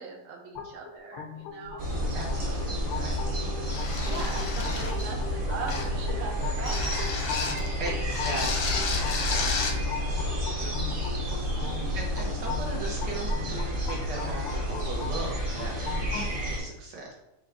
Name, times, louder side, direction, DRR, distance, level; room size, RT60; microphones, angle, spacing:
voice 1, 0.0-1.9 2.4-2.5 4.0-6.8 11.3-11.9, right 5 dB, 90° right, 1 dB, 1.7 m, -39 dB
sound 1, 0.6-16.3, left 6 dB, 85° left, 1.5 m, -39 dB
sound 2, 1.8-16.6, equal, 40° right, 0.9 m, -30 dB
voice 2, 2.1-3.6 4.3-4.4 7.8-10.8 11.5-15.3 15.6-17.1, right 2 dB, 65° right, -1 dB, 1.1 m, -39 dB
sound 3, 3.7-5.1 5.7-6.0 6.7-7.7 8.1-9.8, left 4 dB, 70° left, 1.0 m, -32 dB
4.7 x 2.2 x 4.5 m, 0.90 s
omnidirectional pair, 2.4 m